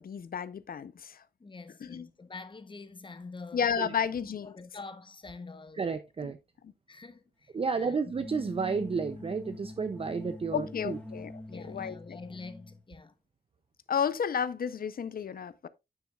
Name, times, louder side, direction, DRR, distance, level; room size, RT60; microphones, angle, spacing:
voice 1, 0.0-1.2 1.8-2.1 3.5-4.5 10.5-12.2 13.9-15.7, left 7 dB, 60° left, 0.6 m, -32 dB
voice 2, 1.4-3.7 4.2-5.8 6.9-8.0 11.5-13.2, left 3 dB, 30° left, 0.8 m, -46 dB
voice 3, 5.8-6.4 7.5-11.0, right 5 dB, 35° right, 0.5 m, -32 dB
sound 1, 8.0-12.8, left 1 dB, 10° left, 2.6 m, -43 dB
9.5 x 7.0 x 2.3 m
wide cardioid pair, 140°, 17 cm